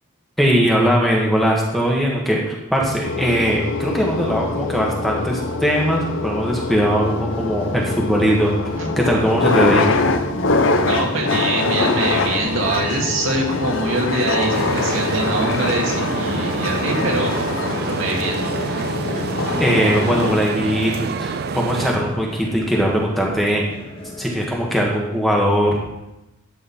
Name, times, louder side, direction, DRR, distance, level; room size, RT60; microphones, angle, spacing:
voice 1, 0.4-9.9 19.6-20.9 21.2-23.6 24.2-25.8, equal, ahead, -2 dB, 1.5 m, -20 dB
sound 1, 3.0-20.4, left 3 dB, 70° left, 0.7 m, -23 dB
sound 2, 7.0-24.8, left 1 dB, 25° left, 0.9 m, -35 dB
voice 2, 10.9-18.5, right 2 dB, 80° right, -2 dB, 2.2 m, -24 dB
sound 3, 14.5-22.0, right 6 dB, 50° right, 0.3 m, -27 dB
11.5 x 6.6 x 4.3 m, 0.94 s
head